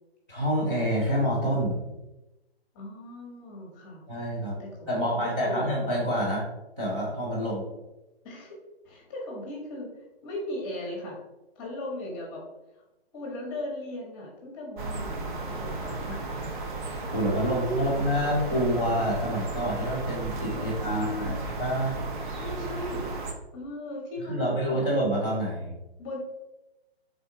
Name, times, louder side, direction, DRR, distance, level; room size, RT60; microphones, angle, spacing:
voice 1, 0.3-1.8 4.1-4.6 4.9-6.4 6.8-7.7 16.8-22.2 24.3-25.7, equal, 10° right, -12 dB, 0.3 m, -27 dB
voice 2, 2.7-4.0 4.6-5.7 8.2-8.6 8.8-11.2 11.5-12.4 13.1-16.3 17.3-18.7 20.5-21.4 22.3-23.1 23.5-24.9 26.0-26.2, left 1 dB, 20° left, -2 dB, 0.9 m, -37 dB
sound 1, 14.8-23.3, right 2 dB, 50° right, 0.7 m, -34 dB
4.1 x 3.5 x 2.6 m, 0.98 s
hypercardioid pair, 150°, 31 cm